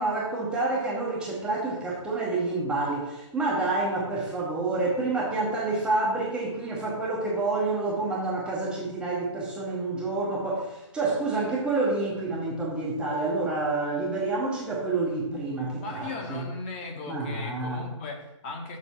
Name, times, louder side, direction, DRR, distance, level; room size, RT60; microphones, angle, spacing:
voice 1, 0.0-16.4 17.1-17.8, right 3 dB, 5° right, -5 dB, 0.8 m, -28 dB
voice 2, 15.8-18.8, left 3 dB, 20° left, 2 dB, 1.1 m, -37 dB
6.5 x 5.0 x 5.6 m, 0.93 s
figure-of-eight pair, 140°, 16 cm